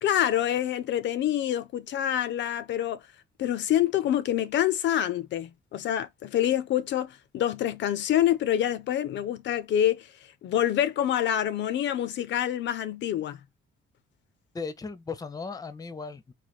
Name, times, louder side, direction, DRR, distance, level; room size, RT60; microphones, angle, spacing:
voice 1, 0.0-3.0 3.4-10.1 10.4-13.4, left 11 dB, 65° left, 0.4 m, -26 dB
voice 2, 14.5-16.3, left 4 dB, 20° left, 0.6 m, -36 dB
3.2 x 2.2 x 4.0 m
cardioid pair, 90°, 20 cm